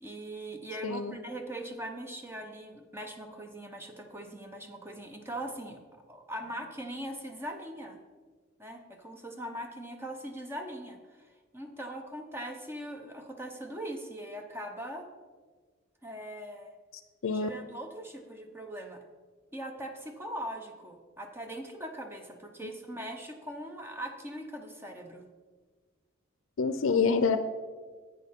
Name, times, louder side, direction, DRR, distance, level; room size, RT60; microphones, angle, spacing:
voice 1, 0.0-5.8 6.1-8.0 8.6-15.1 16.0-16.7 17.3-19.0 19.5-25.2, right 1 dB, 10° right, 4 dB, 0.7 m, -41 dB
voice 2, 0.8-1.2 17.2-17.5 26.6-27.4, left 5 dB, 85° left, 10 dB, 0.5 m, -26 dB
10.5 x 8.6 x 3.6 m, 1.5 s
head